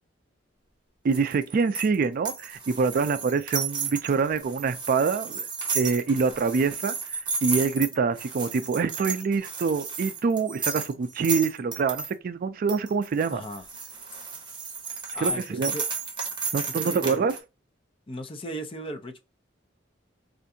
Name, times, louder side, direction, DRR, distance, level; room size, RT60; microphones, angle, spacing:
voice 1, 1.0-5.5 5.7-13.4 15.2-15.7 16.5-17.3, right 5 dB, 50° right, 0.3 m, -25 dB
sound 1, 1.1-12.1 12.7-17.4, right 5 dB, 25° right, 1.0 m, -33 dB
voice 2, 13.3-13.6 15.1-15.8 16.6-17.3 18.1-19.2, equal, 30° left, 0.5 m, -37 dB
4.5 x 2.5 x 2.6 m
head